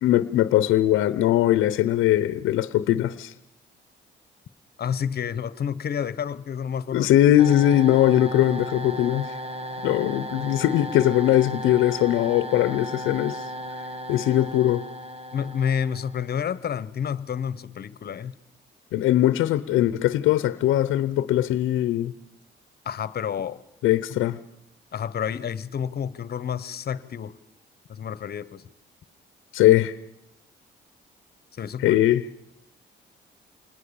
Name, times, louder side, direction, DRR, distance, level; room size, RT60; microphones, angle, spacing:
voice 1, 0.0-3.3 6.9-9.4 9.8-13.5 14.1-14.8 18.9-22.1 23.8-24.4 29.5-29.9 31.8-32.2, left 13 dB, 90° left, 0.8 m, -20 dB
voice 2, 4.8-7.1 15.3-18.3 22.8-23.6 24.9-27.4 27.9-28.6 31.5-32.0, left 8 dB, 50° left, 1.2 m, -29 dB
sound 1, 7.4-16.3, equal, 30° right, 1.7 m, -35 dB
26.5 x 20.5 x 7.1 m
cardioid pair, 90°, 20 cm